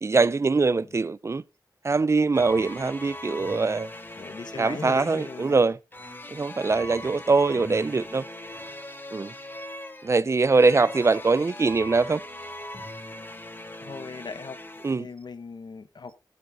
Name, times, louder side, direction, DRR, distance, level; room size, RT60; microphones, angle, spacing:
voice 1, 0.0-1.4 1.8-3.9 4.6-5.8 6.3-8.2 9.1-9.3 10.0-12.2 14.8-15.1, right 4 dB, 35° right, 0.4 m, -22 dB
voice 2, 0.7-1.0 4.2-5.6 13.8-14.6 14.9-16.2, left 4 dB, 65° left, 1.1 m, -39 dB
sound 1, 2.3-14.9, left 1 dB, 25° left, 1.6 m, -40 dB
12.5 x 7.2 x 4.0 m
wide cardioid pair, 90°, 8 cm